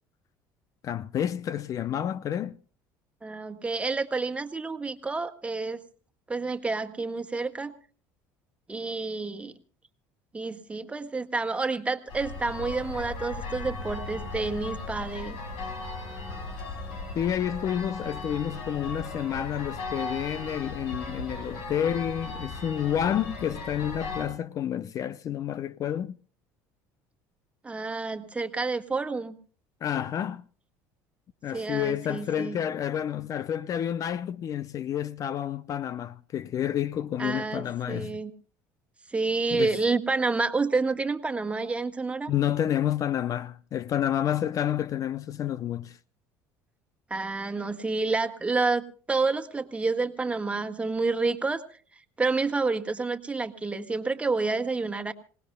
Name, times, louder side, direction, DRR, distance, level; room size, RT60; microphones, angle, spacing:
voice 1, 0.8-2.6 17.1-26.1 29.8-30.4 31.4-38.2 39.5-39.8 42.3-46.0, left 10 dB, 45° left, 0.6 m, -29 dB
voice 2, 3.2-5.8 6.3-7.7 8.7-9.5 10.3-15.4 27.6-29.4 31.5-32.6 37.2-38.3 39.1-42.3 47.1-51.6 52.2-55.1, right 3 dB, 15° right, 1.6 m, -29 dB
sound 1, 12.1-24.3, left 3 dB, 80° left, 5.2 m, -37 dB
27.0 x 18.5 x 2.2 m
supercardioid pair, 105°, 8 cm